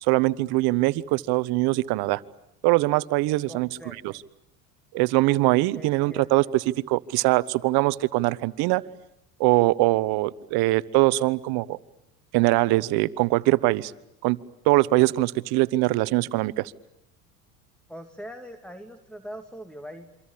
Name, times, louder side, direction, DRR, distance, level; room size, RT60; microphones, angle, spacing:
voice 1, 0.0-2.2 2.6-3.7 4.0-4.1 4.9-8.8 9.4-11.8 12.3-13.9 14.2-14.4 14.6-16.7, right 19 dB, 60° right, 18 dB, 1.2 m, -22 dB
voice 2, 3.5-4.2 5.7-6.4 17.9-20.1, equal, ahead, 8 dB, 2.3 m, -42 dB
27.5 x 25.0 x 8.6 m, 0.82 s
supercardioid pair, 95°, 42 cm